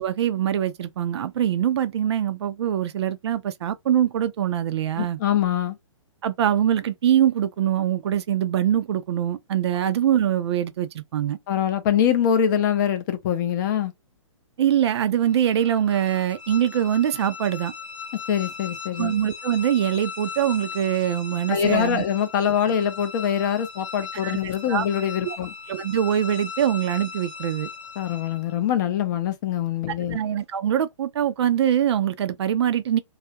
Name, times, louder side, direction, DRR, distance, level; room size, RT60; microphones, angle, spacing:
voice 1, 0.0-5.2 6.2-11.4 14.6-17.7 19.0-22.0 24.1-24.9 25.2-25.4 25.7-27.7 30.1-33.0, right 10 dB, 55° right, 0.5 m, -23 dB
voice 2, 5.0-5.8 11.5-13.9 18.3-19.1 21.5-25.5 28.0-30.2, left 9 dB, 35° left, 0.6 m, -24 dB
sound 1, 15.2-28.6, left 5 dB, 75° left, 0.7 m, -38 dB
2.3 x 2.1 x 2.7 m
hypercardioid pair, 145°, 17 cm